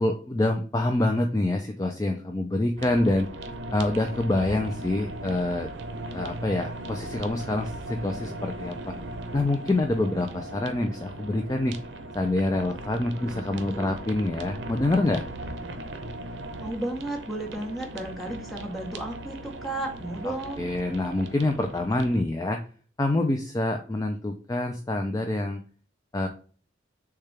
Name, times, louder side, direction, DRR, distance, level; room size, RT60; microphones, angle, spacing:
voice 1, 0.0-3.3 3.7-5.7 6.1-8.9 9.3-11.8 12.1-15.2 20.2-22.6 23.0-25.6 26.1-26.3, left 2 dB, 20° left, 4 dB, 0.3 m, -26 dB
sound 1, 2.8-22.2, right 1 dB, 80° right, 0.7 m, -38 dB
voice 2, 13.1-13.9 16.6-20.7, right 1 dB, ahead, -1 dB, 1.0 m, -34 dB
6.5 x 2.3 x 3.3 m, 0.42 s
head